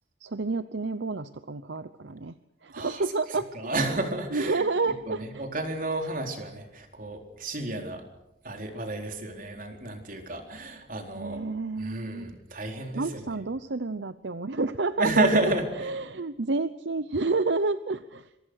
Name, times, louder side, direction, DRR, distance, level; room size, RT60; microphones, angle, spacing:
voice 1, 0.2-2.3 2.6-3.5 4.3-5.4 11.2-12.4 12.9-15.3 15.8-18.3, right 3 dB, 70° right, 12 dB, 0.8 m, -29 dB
voice 2, 2.7-3.0 3.3-8.0 8.4-11.4 11.8-13.4 15.0-16.0, right 2 dB, 45° right, 3 dB, 4.1 m, -31 dB
26.5 x 24.0 x 6.6 m, 0.89 s
head